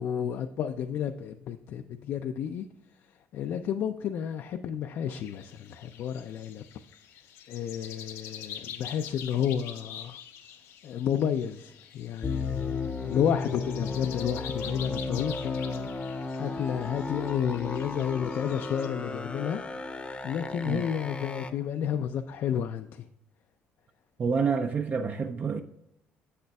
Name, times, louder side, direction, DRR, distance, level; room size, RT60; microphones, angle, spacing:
voice 1, 0.0-2.7 3.3-6.6 7.5-10.2 10.8-15.9 16.4-19.6 20.2-23.1, left 9 dB, 65° left, 0.3 m, -31 dB
sound 1, 5.2-18.9, left 9 dB, 85° left, 0.7 m, -46 dB
sound 2, 12.2-21.5, left 4 dB, 25° left, 0.6 m, -34 dB
voice 2, 24.2-25.6, right 5 dB, 40° right, 0.4 m, -28 dB
7.2 x 6.5 x 2.3 m
cardioid pair, 90°, 5 cm